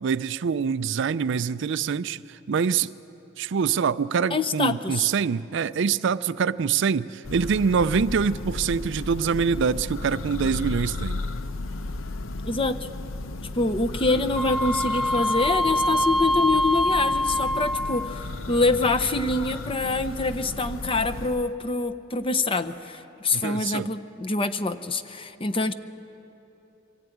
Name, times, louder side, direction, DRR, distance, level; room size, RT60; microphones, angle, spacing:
voice 1, 0.0-2.9 3.4-11.2 23.3-23.9, right 6 dB, 65° right, 0.4 m, -25 dB
voice 2, 4.3-5.1 12.4-12.9 13.5-25.7, left 3 dB, 25° left, 0.7 m, -25 dB
Church bell, 7.2-21.5, left 2 dB, 85° left, 0.7 m, -34 dB
Wind instrument woodwind instrument, 14.3-18.3, left 1 dB, ahead, 0.5 m, -24 dB
24.0 x 15.5 x 9.2 m
head